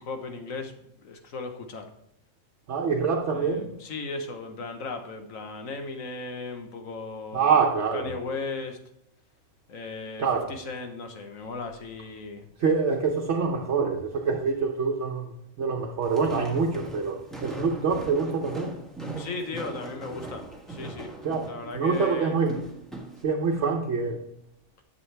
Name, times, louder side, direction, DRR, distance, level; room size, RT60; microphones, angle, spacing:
voice 1, 0.0-1.9 3.3-7.5 7.9-8.8 9.7-12.5 19.2-21.2 21.5-22.4, left 3 dB, 80° left, 5 dB, 1.5 m, -36 dB
voice 2, 2.7-3.8 7.3-8.1 10.2-10.6 12.6-15.3 15.6-18.8 21.2-22.6 23.2-24.2, right 5 dB, 60° right, 1 dB, 1.2 m, -26 dB
Walk footsteps, 16.0-23.2, right 2 dB, ahead, 1.3 m, -39 dB
11.0 x 7.0 x 3.4 m, 0.80 s
omnidirectional pair, 1.4 m